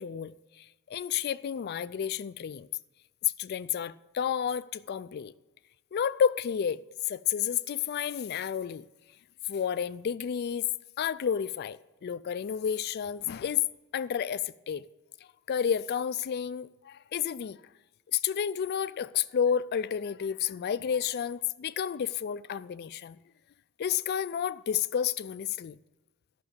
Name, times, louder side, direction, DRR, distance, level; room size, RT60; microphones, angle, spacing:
voice 1, 0.0-2.7 3.2-5.3 5.9-8.8 9.5-10.7 11.0-13.7 13.9-14.9 15.5-17.6 18.1-23.2 23.8-25.8, left 8 dB, 45° left, 0.3 m, -31 dB
11.5 x 5.9 x 6.9 m
head